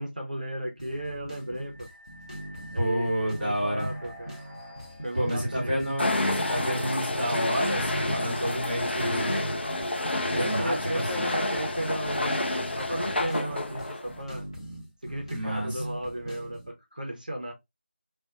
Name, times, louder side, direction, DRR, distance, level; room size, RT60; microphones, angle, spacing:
voice 1, 0.0-1.9 2.7-3.1 3.4-4.3 5.0-5.8 10.3-14.5 15.0-17.5, right 1 dB, 45° right, 0.5 m, -35 dB
sound 1, 0.8-16.7, right 1 dB, 30° left, 0.8 m, -42 dB
sound 2, 1.4-12.2, equal, 10° left, 0.4 m, -49 dB
voice 2, 2.8-3.9 5.1-9.6 10.3-11.3 15.3-15.8, equal, 5° right, 0.8 m, -29 dB
sound 3, 6.0-14.2, left 2 dB, 65° left, 0.6 m, -29 dB
2.3 x 2.2 x 2.6 m
figure-of-eight pair, 170°, 6 cm